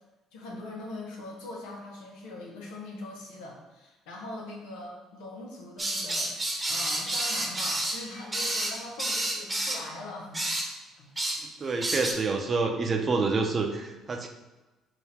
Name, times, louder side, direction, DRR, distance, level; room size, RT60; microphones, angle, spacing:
voice 1, 0.3-6.3 6.7-10.5 11.0-11.1, left 2 dB, 85° left, -2 dB, 1.0 m, -41 dB
sound 1, 5.8-9.8 10.3-10.7 11.2-11.4 11.7-12.1, right 1 dB, 20° right, 0.9 m, -30 dB
voice 2, 11.6-14.3, right 4 dB, 40° right, 4 dB, 0.6 m, -27 dB
3.8 x 2.6 x 4.3 m, 1.1 s
supercardioid pair, 70°, 0 cm